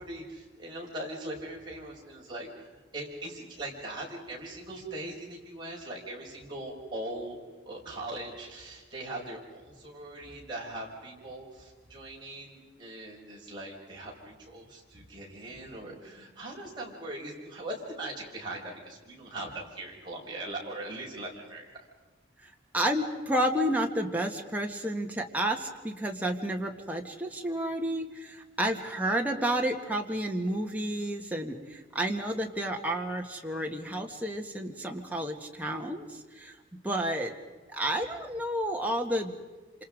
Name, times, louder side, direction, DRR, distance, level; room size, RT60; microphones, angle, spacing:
voice 1, 0.0-7.4 7.7-21.6, right 1 dB, 25° right, -3 dB, 5.8 m, -40 dB
voice 2, 22.4-36.5 36.8-37.3 37.7-39.4, right 1 dB, 10° right, 1 dB, 1.7 m, -31 dB
27.5 x 27.0 x 5.1 m, 1.3 s
head